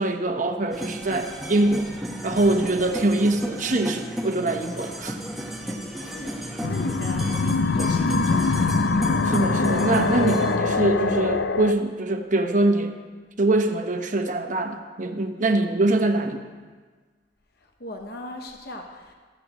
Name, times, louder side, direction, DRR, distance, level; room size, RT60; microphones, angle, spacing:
voice 1, 0.0-1.9 2.2-5.2 9.2-12.9 13.4-16.4, right 2 dB, 45° right, 5 dB, 1.0 m, -23 dB
sound 1, 0.7-10.6, right 1 dB, ahead, 1.2 m, -34 dB
voice 2, 6.0-6.4 6.7-7.3 7.7-8.9 17.8-19.1, left 1 dB, 60° left, 3 dB, 1.0 m, -37 dB
sound 2, 6.6-11.7, left 3 dB, 80° left, 0.5 m, -23 dB
14.0 x 14.0 x 3.0 m, 1.4 s
head